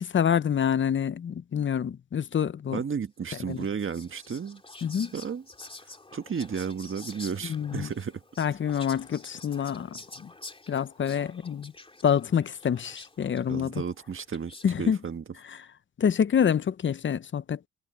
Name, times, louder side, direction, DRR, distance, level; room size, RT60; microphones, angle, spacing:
voice 1, 0.0-2.8 3.5-3.7 4.8-5.1 7.4-7.9 8.4-10.3 10.7-11.7 12.0-13.8 14.6-15.0 16.0-17.7, left 8 dB, 40° left, 0.7 m, -27 dB
voice 2, 2.7-4.6 5.1-5.4 6.1-8.2 13.5-15.2, right 6 dB, 45° right, 1.6 m, -33 dB
Whispering, 3.5-14.8, left 2 dB, 20° left, 2.7 m, -48 dB
cardioid pair, 85°, 29 cm